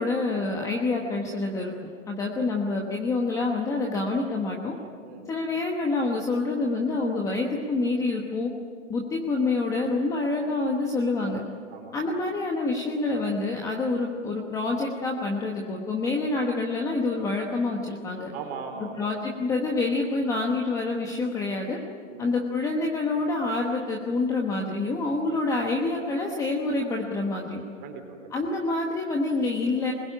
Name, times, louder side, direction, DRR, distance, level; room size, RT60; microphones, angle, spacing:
voice 1, 0.0-1.7 2.1-4.8 5.3-8.5 8.9-11.4 11.9-18.3 18.8-21.8 22.2-27.6 28.3-29.9, left 3 dB, 10° left, 0 dB, 1.2 m, -27 dB
voice 2, 11.7-12.1 18.3-19.1 22.1-22.3 27.8-28.3, right 5 dB, 25° right, 4 dB, 3.6 m, -39 dB
24.0 x 21.0 x 10.0 m, 2.2 s
hypercardioid pair, 165°, 40 cm